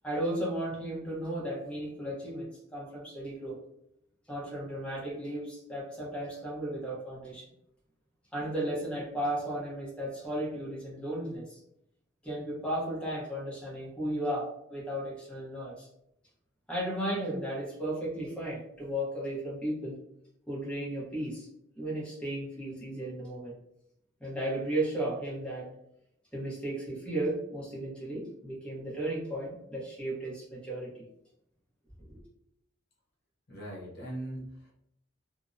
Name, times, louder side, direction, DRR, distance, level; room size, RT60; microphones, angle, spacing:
voice 1, 0.0-3.6 4.3-7.4 8.3-11.6 12.2-15.9 16.7-20.0 20.5-21.5 21.8-23.5 24.2-25.7 26.3-31.0 32.0-32.2, right 1 dB, 5° left, -6 dB, 0.8 m, -35 dB
voice 2, 33.5-34.7, right 1 dB, 55° left, -3 dB, 0.7 m, -40 dB
2.6 x 2.0 x 2.4 m, 0.77 s
head